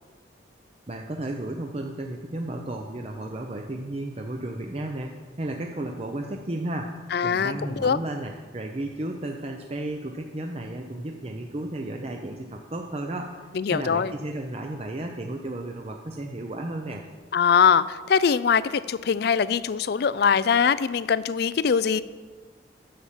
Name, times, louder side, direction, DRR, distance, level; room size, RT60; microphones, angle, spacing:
voice 1, 0.9-6.9 7.2-13.4 13.7-17.0, right 1 dB, 30° right, 3 dB, 0.6 m, -33 dB
voice 2, 7.1-7.5 7.8-8.0 13.5-14.1 17.3-22.0, left 6 dB, 55° left, 17 dB, 0.4 m, -22 dB
10.5 x 7.1 x 7.3 m, 1.5 s
head